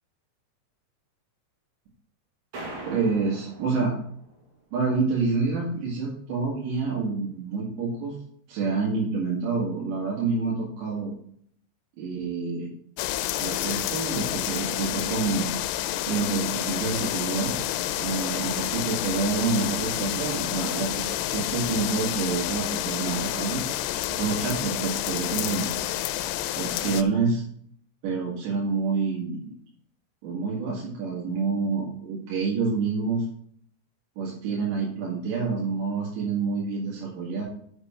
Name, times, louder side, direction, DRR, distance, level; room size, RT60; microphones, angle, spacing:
sound 1, 2.5-4.5, right 1 dB, 50° right, 3.0 m, -41 dB
voice 1, 2.9-3.9 4.7-8.2 8.5-11.1 12.0-12.7 13.4-15.5 16.1-17.6 18.0-23.6 24.1-25.7 26.5-27.4 28.0-29.5 30.2-33.3 34.2-37.4, right 4 dB, 85° right, -5 dB, 4.1 m, -28 dB
sound 2, 13.0-27.0, left 13 dB, 90° left, 2.8 m, -29 dB
8.0 x 6.1 x 4.4 m, 0.63 s
omnidirectional pair, 5.0 m